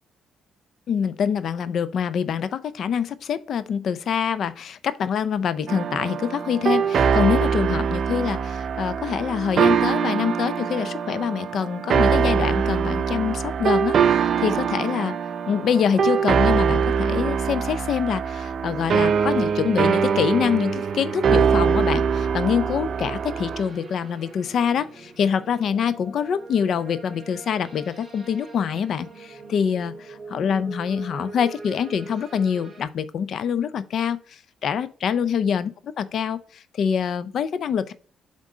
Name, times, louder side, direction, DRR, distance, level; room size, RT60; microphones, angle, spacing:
voice 1, 0.9-15.2 15.5-29.9 30.3-37.9, left 7 dB, 65° left, 0.5 m, -25 dB
sound 1, 5.7-23.6, right 6 dB, 60° right, 0.5 m, -23 dB
sound 2, 20.0-32.8, right 3 dB, 40° right, 2.9 m, -43 dB
7.4 x 3.7 x 3.9 m
cardioid pair, 90°, 0 cm